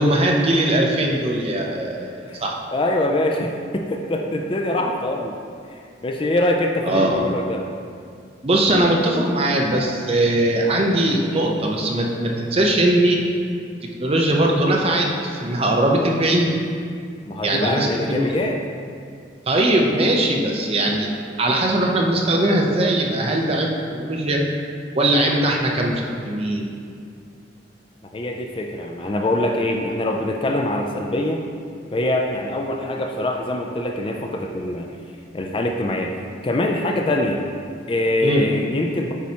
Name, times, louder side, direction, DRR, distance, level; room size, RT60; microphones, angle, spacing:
voice 1, 0.0-2.5 6.9-7.2 8.4-13.2 14.0-16.5 17.4-18.3 19.5-21.1 21.4-24.4 24.9-26.7 38.2-38.5, right 1 dB, 30° right, 0 dB, 0.6 m, -20 dB
voice 2, 2.7-5.3 5.7-7.7 17.3-18.6 28.1-31.4 31.9-34.9 35.3-36.1 36.4-37.4 37.9-39.1, left 1 dB, 25° left, 2 dB, 0.3 m, -23 dB
8.2 x 4.7 x 2.8 m, 2.2 s
head